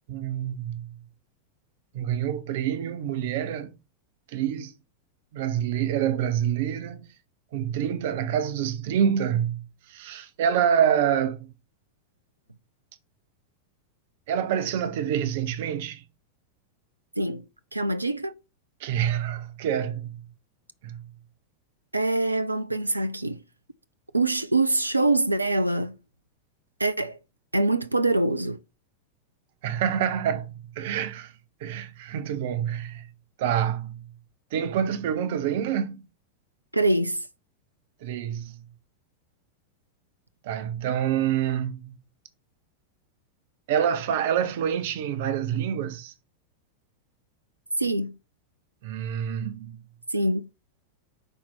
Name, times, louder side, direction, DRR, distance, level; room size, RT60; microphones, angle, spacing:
voice 1, 0.1-0.9 1.9-3.7 4.3-4.7 5.3-7.1 7.5-11.5 14.3-16.0 18.8-20.2 20.8-21.0 29.6-31.3 31.6-33.1 33.4-34.0 34.5-36.0 38.0-38.6 40.4-42.0 43.7-46.1 48.8-49.8, right 9 dB, 50° right, 0.9 m, -27 dB
voice 2, 17.7-18.3 21.9-23.4 24.1-25.9 26.8-27.2 27.5-28.6 36.7-37.2 47.8-48.1 50.1-50.5, right 2 dB, 85° right, 0.4 m, -24 dB
5.5 x 4.3 x 6.2 m
figure-of-eight pair, 90°, 0 cm